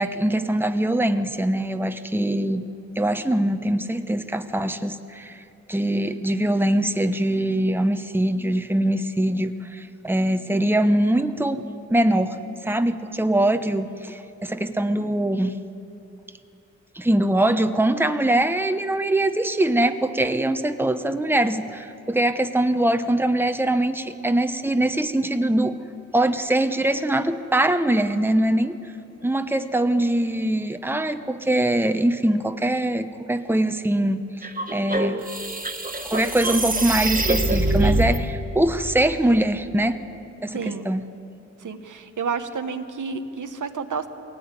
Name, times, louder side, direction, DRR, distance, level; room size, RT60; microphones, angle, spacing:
voice 1, 0.0-2.6 3.0-5.4 5.7-15.5 16.9-25.8 26.1-28.8 29.2-34.2 34.7-35.2 36.0-40.0 40.4-41.0, right 1 dB, 5° right, 8 dB, 1.0 m, -22 dB
sound 1, 34.4-38.2, right 2 dB, 30° right, 1.8 m, -24 dB
voice 2, 40.5-40.9 41.6-44.1, right 5 dB, 85° right, 7 dB, 1.1 m, -30 dB
21.5 x 17.0 x 9.7 m, 2.8 s
cardioid pair, 55°, 30 cm